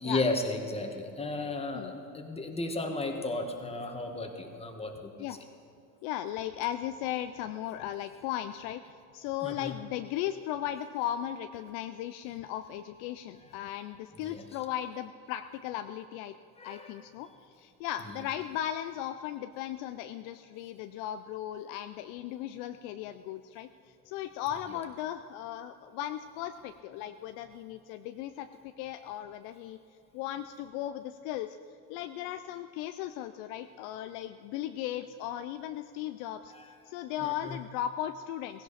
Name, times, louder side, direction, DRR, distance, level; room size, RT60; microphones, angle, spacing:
voice 1, 0.0-5.3 9.4-9.7 14.2-14.4 16.6-16.9 36.5-36.7 37.2-37.6, left 2 dB, 10° left, 4 dB, 1.6 m, -34 dB
voice 2, 6.0-16.3 16.6-23.7 24.1-29.8 30.1-31.6 31.9-38.6, left 11 dB, 55° left, 9 dB, 0.6 m, -37 dB
16.5 x 16.0 x 4.2 m, 2.6 s
supercardioid pair, 105°, 49 cm